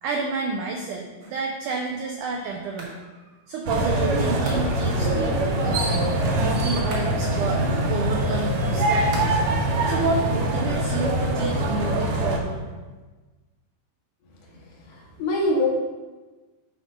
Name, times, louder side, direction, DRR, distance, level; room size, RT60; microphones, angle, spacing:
voice 1, 0.0-5.9 6.4-7.6 7.9-9.4 9.8-12.6, right 3 dB, 90° right, 1 dB, 1.7 m, -30 dB
sound 1, 1.2-1.6 2.8-3.1 4.4-5.0 6.9-7.4 9.1-9.6 9.9-10.8, right 2 dB, 45° right, 1.6 m, -41 dB
sound 2, 3.7-12.4, right 1 dB, 65° right, 1.9 m, -23 dB
voice 2, 14.9-15.7, left 2 dB, 75° left, -3 dB, 3.4 m, -24 dB
11.0 x 3.7 x 5.0 m, 1.3 s
omnidirectional pair, 4.5 m